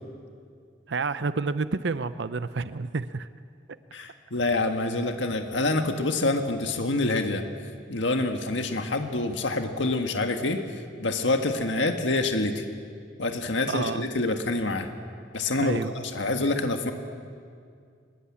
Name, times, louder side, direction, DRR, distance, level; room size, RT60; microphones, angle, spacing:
voice 1, 0.9-3.3 13.7-14.1 15.6-15.9, right 4 dB, 70° right, 13 dB, 0.7 m, -29 dB
voice 2, 3.9-7.4 7.9-12.6 13.2-14.9 15.3-16.9, left 2 dB, 85° left, 5 dB, 1.7 m, -27 dB
25.0 x 21.5 x 8.6 m, 2.3 s
head